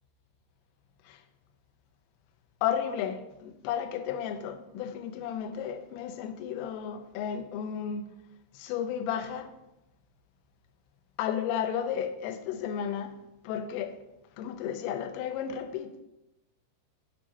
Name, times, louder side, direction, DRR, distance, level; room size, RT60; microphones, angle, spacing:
voice 1, 2.6-8.0 8.6-9.5 11.2-13.1 13.4-13.9 14.4-16.0, left 8 dB, 80° left, 7 dB, 3.2 m, -33 dB
10.0 x 8.4 x 2.8 m, 0.91 s
omnidirectional pair, 5.9 m